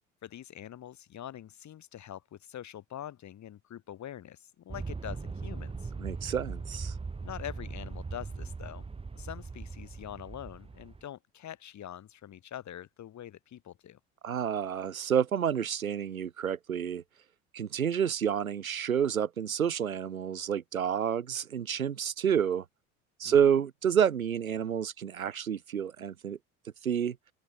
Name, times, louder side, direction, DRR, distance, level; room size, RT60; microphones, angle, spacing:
voice 1, 0.2-5.9 7.2-8.8 9.1-14.0 23.2-23.5, left 11 dB, 45° left, 5.1 m, -44 dB
Aircraft, 4.7-11.0, right 4 dB, 15° right, 1.2 m, -39 dB
voice 2, 6.0-6.9 14.2-17.0 17.5-22.6 23.2-26.4 26.8-27.2, right 8 dB, 90° right, 1.2 m, -29 dB
hypercardioid pair, 65°, 41 cm